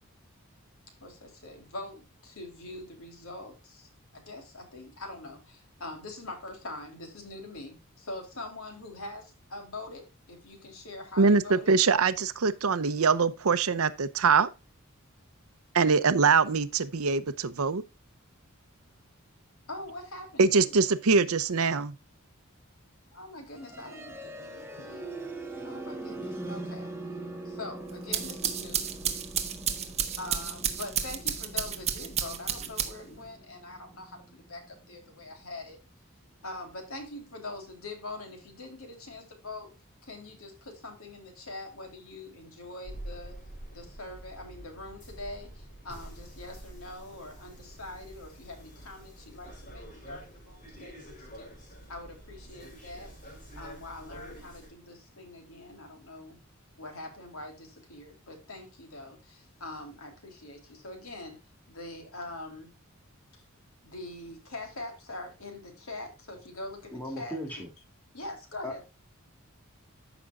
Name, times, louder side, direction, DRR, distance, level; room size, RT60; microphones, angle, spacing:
voice 1, 1.0-11.8 19.7-20.8 23.1-25.2 25.6-26.9 27.4-28.8 30.2-35.8 36.4-39.7 40.0-43.3 43.7-51.6 51.9-56.4 56.7-61.4 61.7-62.7 63.8-67.4 68.1-68.8, left 2 dB, 85° left, 3.4 m, -43 dB
voice 2, 11.2-14.5 15.7-17.8 20.4-21.9, right 4 dB, 85° right, 0.7 m, -23 dB
sound 1, 23.5-35.4, right 2 dB, 10° right, 1.3 m, -42 dB
sound 2, 27.9-33.2, right 8 dB, 30° right, 1.2 m, -32 dB
sound 3, 42.8-54.7, right 1 dB, 40° left, 3.8 m, -47 dB
voice 3, 66.9-67.7 68.6-68.9, equal, 10° left, 2.8 m, -37 dB
14.0 x 6.1 x 2.5 m
head